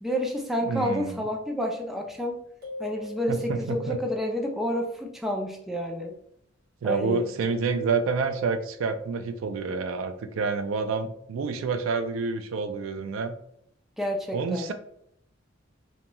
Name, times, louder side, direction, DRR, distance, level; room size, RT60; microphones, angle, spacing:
voice 1, 0.0-2.4 2.8-6.1 6.8-7.3 14.0-14.7, equal, ahead, 1 dB, 0.3 m, -29 dB
voice 2, 0.6-1.2 3.3-4.0 6.8-13.3 14.3-14.7, right 4 dB, 90° right, 8 dB, 0.4 m, -28 dB
sound 1, 2.6-4.1, left 2 dB, 50° right, 1.0 m, -41 dB
2.9 x 2.6 x 2.2 m, 0.71 s
head